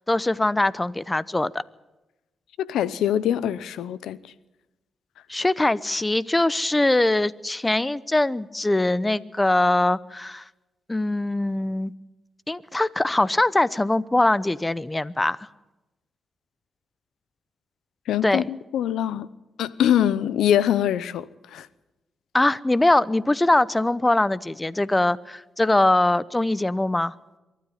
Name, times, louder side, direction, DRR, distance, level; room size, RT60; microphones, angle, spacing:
voice 1, 0.0-1.6 5.3-10.4 10.9-11.9 12.5-15.5 18.2-18.5 22.3-27.1, left 2 dB, 15° left, 0.8 m, -22 dB
voice 2, 2.6-4.2 18.1-19.3 19.6-21.3 21.5-21.7, left 10 dB, 85° left, 0.7 m, -23 dB
23.5 x 12.5 x 9.3 m
supercardioid pair, 60°, 0 cm